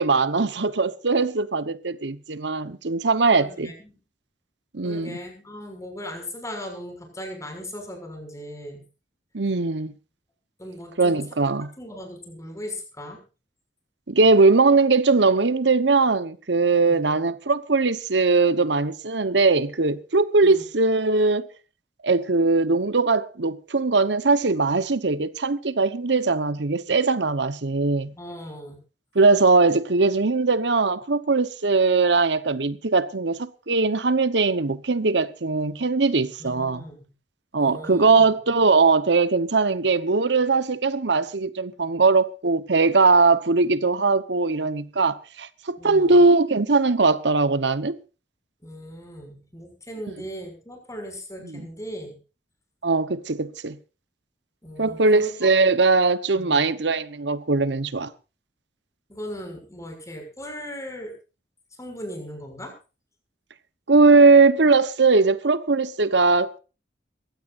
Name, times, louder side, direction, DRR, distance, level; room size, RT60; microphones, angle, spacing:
voice 1, 0.0-3.7 4.7-5.2 9.3-9.9 11.0-11.7 14.1-21.5 22.0-28.1 29.1-36.8 37.5-48.0 51.4-51.6 52.8-53.8 54.8-58.1 63.9-66.6, right 3 dB, 85° right, 1.0 m, -20 dB
voice 2, 3.3-4.0 4.8-8.8 10.6-11.2 11.8-13.2 16.7-17.0 20.4-20.6 28.1-28.8 36.4-37.1 37.6-38.3 45.8-46.2 48.6-52.2 54.6-55.5 56.3-56.6 59.1-61.1 61.8-62.8, equal, 20° left, 6.3 m, -38 dB
22.5 x 16.0 x 2.6 m
head